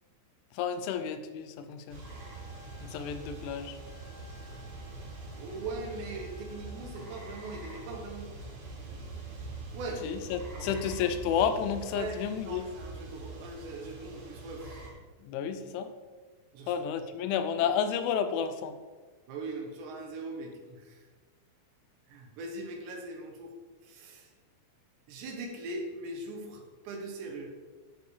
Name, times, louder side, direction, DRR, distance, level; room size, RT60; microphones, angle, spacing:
voice 1, 0.5-2.0 2.8-3.8 10.0-12.7 15.2-15.9 16.7-18.8, left 8 dB, 85° left, 9 dB, 3.1 m, -31 dB
sound 1, 1.9-14.9, right 2 dB, 45° right, 3.0 m, -44 dB
Wind instrument woodwind instrument, 2.0-8.2, left 3 dB, 50° left, 2.6 m, -59 dB
voice 2, 5.3-8.3 8.7-9.2 9.7-10.1 10.5-10.8 11.9-12.2 12.4-14.8 16.5-16.7 17.2-17.3 19.3-21.1 22.1-23.5 23.8-24.3 25.1-27.5, right 2 dB, 75° right, 1 dB, 3.3 m, -41 dB
13.0 x 7.0 x 3.3 m, 1.3 s
omnidirectional pair, 5.4 m